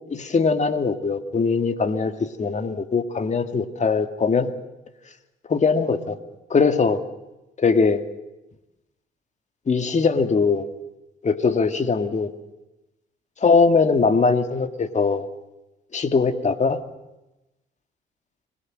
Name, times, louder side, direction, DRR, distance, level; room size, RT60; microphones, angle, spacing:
voice 1, 0.1-4.5 5.5-6.2 6.5-7.0 7.6-8.0 9.7-10.7 11.2-12.3 13.4-15.3 15.9-16.8, left 4 dB, 35° left, 8 dB, 2.2 m, -21 dB
26.0 x 20.5 x 7.7 m, 0.97 s
cardioid pair, 90°, 20 cm